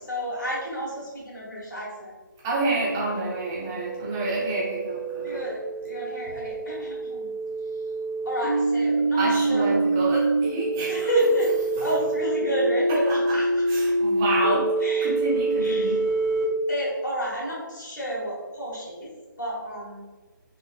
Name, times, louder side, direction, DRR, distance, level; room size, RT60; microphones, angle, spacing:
voice 1, 0.1-2.1 5.2-7.3 8.2-9.8 10.9-11.5 11.8-13.6 14.8-15.1 15.6-15.9 16.7-19.1 19.4-20.1, equal, 60° left, -5 dB, 1.2 m, -30 dB
voice 2, 2.4-5.4 9.2-11.1 13.0-13.2 13.7-14.7 15.0-16.0, right 2 dB, 10° right, -7 dB, 0.3 m, -28 dB
sound 1, 3.2-16.4, right 2 dB, 55° right, 1.0 m, -26 dB
3.8 x 2.0 x 2.3 m, 1.3 s
figure-of-eight pair, 150°, 11 cm